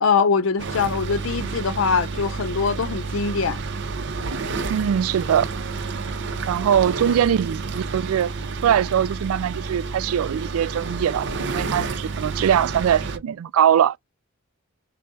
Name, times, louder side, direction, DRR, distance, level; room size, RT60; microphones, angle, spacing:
voice 1, 0.0-3.6, left 5 dB, 65° left, 0.6 m, -22 dB
sound 1, 0.6-13.2, right 4 dB, 60° right, 0.7 m, -30 dB
voice 2, 4.7-5.5 6.5-8.3 8.6-14.0, right 9 dB, 90° right, 0.3 m, -21 dB
3.7 x 2.1 x 3.9 m
head